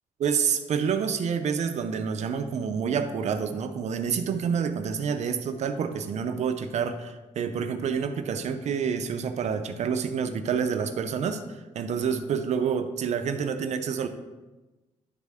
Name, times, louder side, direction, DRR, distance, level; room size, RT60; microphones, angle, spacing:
voice 1, 0.2-14.1, right 6 dB, 60° right, 8 dB, 0.6 m, -28 dB
11.0 x 4.1 x 3.6 m, 1.1 s
cardioid pair, 110°, 13 cm